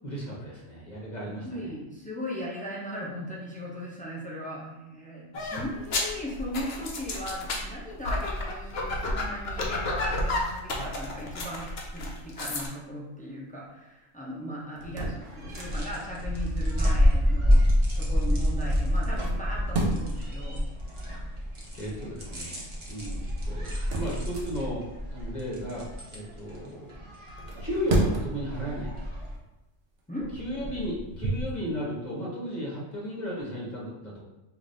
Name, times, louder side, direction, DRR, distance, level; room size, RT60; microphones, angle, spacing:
voice 1, 0.0-1.5 21.8-26.9 27.6-29.0 30.4-34.2, equal, 40° left, -4 dB, 1.0 m, -35 dB
voice 2, 1.2-17.6 18.0-20.6 30.1-30.3, equal, 10° left, -5 dB, 0.4 m, -38 dB
sound 1, 5.3-12.7, left 2 dB, 60° left, 0.9 m, -31 dB
sound 2, 14.7-16.0 19.0-20.3 23.2-25.0 27.3-28.5 29.1-29.3 30.0-31.5, right 2 dB, 70° right, 1.0 m, -32 dB
sound 3, 15.2-29.4, equal, 30° right, 0.7 m, -28 dB
4.9 x 2.5 x 2.6 m, 0.99 s
omnidirectional pair, 1.3 m